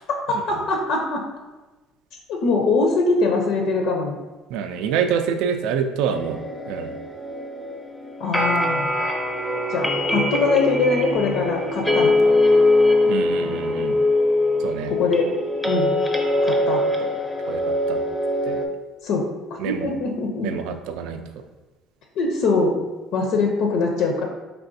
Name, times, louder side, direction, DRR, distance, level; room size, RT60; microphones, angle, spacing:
voice 1, 0.3-1.2 2.3-4.1 8.2-8.9 9.7-12.1 14.9-15.3 15.6-15.9 16.4-16.8 19.0-20.5 22.2-22.8 23.1-24.2, left 3 dB, 70° left, 2 dB, 0.5 m, -22 dB
voice 2, 4.5-6.4 6.7-6.9 13.1-14.0 14.6-14.9 17.5-17.6 17.9-18.0 18.5-18.6 19.6-19.9 20.4-21.2, right 7 dB, 80° right, 7 dB, 0.3 m, -26 dB
sound 1, 6.1-18.7, left 1 dB, 5° left, 0.5 m, -22 dB
4.5 x 3.3 x 2.6 m, 1.2 s
cardioid pair, 130°, 0 cm